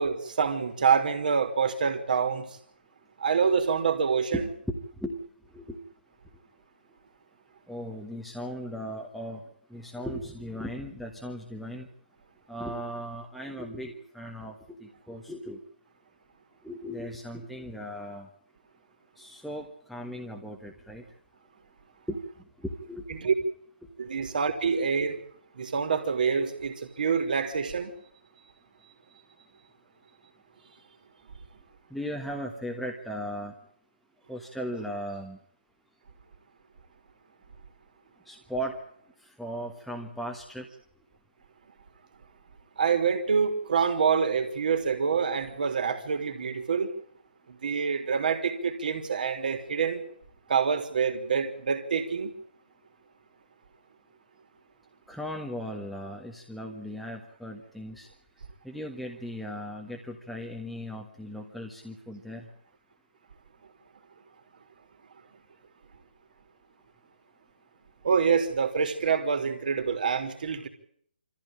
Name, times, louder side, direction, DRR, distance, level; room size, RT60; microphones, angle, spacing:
voice 1, 0.0-2.6 3.2-4.5 23.1-23.3 24.0-25.2 25.5-27.9 42.8-46.9 47.5-50.0 50.5-52.3 68.0-70.7, right 6 dB, 55° right, 3.3 m, -26 dB
voice 2, 4.3-5.2 5.5-5.8 7.7-9.4 9.7-11.9 12.5-15.6 16.6-18.3 19.2-21.0 22.1-22.2 22.6-23.1 31.9-33.5 34.3-35.4 38.3-38.8 39.2-40.7 55.1-58.1 58.6-62.5, equal, ahead, 1.4 m, -37 dB
24.0 x 14.5 x 8.9 m
figure-of-eight pair, 145°, 5 cm